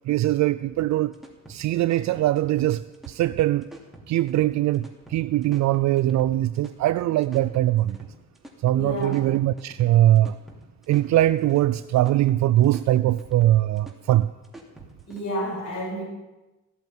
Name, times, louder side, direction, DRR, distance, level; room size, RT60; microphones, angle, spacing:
voice 1, 0.0-1.1 1.5-3.7 4.1-8.0 8.6-10.4 10.9-14.3, right 14 dB, 65° right, 0.5 m, -21 dB
sound 1, 0.8-15.2, right 1 dB, ahead, 2.7 m, -47 dB
voice 2, 8.7-9.2 15.1-16.0, equal, 65° left, 5.4 m, -30 dB
15.0 x 8.2 x 9.0 m
cardioid pair, 90°, 30 cm